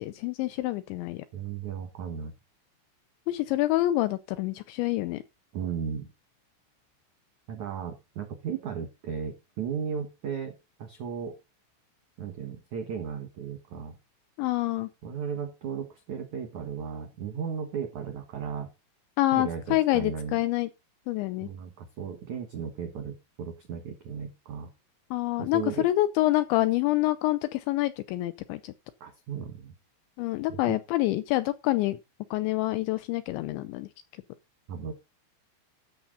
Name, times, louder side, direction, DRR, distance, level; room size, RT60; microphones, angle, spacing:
voice 1, 0.0-1.2 3.3-5.2 14.4-14.9 19.2-20.7 21.1-21.5 25.1-28.7 30.2-32.0 32.3-33.9, left 17 dB, 80° left, 2.7 m, -27 dB
voice 2, 1.3-2.3 5.5-6.1 7.5-11.4 12.2-14.0 15.0-18.7 19.3-20.4 21.4-24.7 25.4-25.9 29.0-29.7 30.5-30.8 34.7-34.9, right 7 dB, 70° right, 1.8 m, -35 dB
13.0 x 7.0 x 3.9 m
omnidirectional pair, 5.7 m